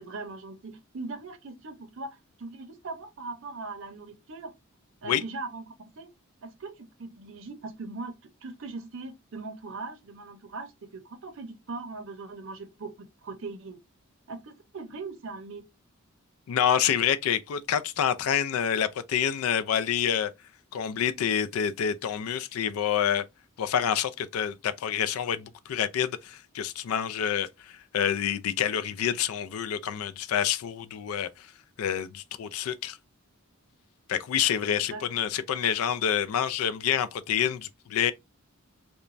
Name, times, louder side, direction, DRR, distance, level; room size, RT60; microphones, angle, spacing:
voice 1, 0.0-4.5 5.0-6.1 6.4-8.1 8.4-13.8 14.3-15.6 34.9-35.0, right 3 dB, 65° right, 0.6 m, -40 dB
voice 2, 16.5-20.3 20.7-23.2 23.6-31.5 31.8-33.0 34.1-38.1, left 9 dB, 80° left, 0.3 m, -27 dB
3.0 x 2.2 x 2.4 m
head